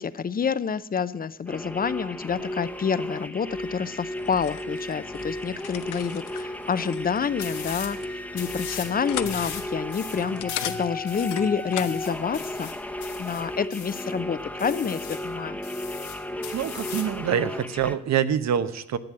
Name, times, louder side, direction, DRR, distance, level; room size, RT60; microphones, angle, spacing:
voice 1, 0.0-8.0 8.3-12.7 13.2-15.6, left 6 dB, 30° left, 16 dB, 0.6 m, -28 dB
sound 1, 1.5-18.0, left 1 dB, 5° left, 0.9 m, -34 dB
sound 2, 4.1-12.0, left 12 dB, 85° left, 0.8 m, -39 dB
sound 3, 7.4-8.0 8.3-8.9 9.3-14.1 14.6-15.3 15.6-17.2, left 8 dB, 65° left, 2.3 m, -39 dB
voice 2, 16.5-19.0, right 9 dB, 65° right, 13 dB, 0.9 m, -25 dB
10.5 x 8.3 x 7.5 m, 0.87 s
cardioid pair, 90°, 30 cm